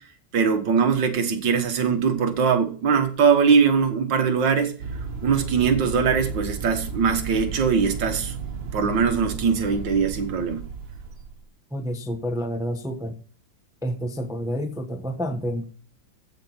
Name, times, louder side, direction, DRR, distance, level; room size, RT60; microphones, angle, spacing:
voice 1, 0.3-4.7 5.2-8.3 8.7-10.6, right 6 dB, 75° right, 2.1 m, -21 dB
sound 1, 4.8-11.4, right 5 dB, 90° right, 2.0 m, -33 dB
voice 2, 11.7-13.2 13.8-15.6, equal, 5° right, 0.7 m, -29 dB
15.0 x 5.2 x 5.8 m
omnidirectional pair, 2.0 m